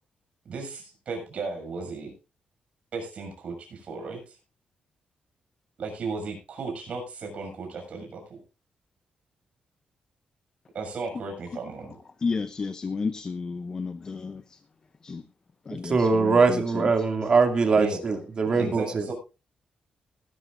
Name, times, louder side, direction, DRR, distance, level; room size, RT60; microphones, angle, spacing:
voice 1, 0.4-2.1 2.9-4.4 5.8-8.4 10.7-12.0 17.7-18.0 18.6-19.1, right 4 dB, 50° right, 6.8 m, -35 dB
voice 2, 12.2-14.6 15.0-15.2 15.7-16.9 17.7-17.8 18.5-18.7, left 4 dB, 25° left, 0.7 m, -32 dB
voice 3, 15.7-19.0, right 4 dB, 35° right, 2.5 m, -22 dB
19.5 x 13.0 x 2.6 m
wide cardioid pair, 170°, 3 cm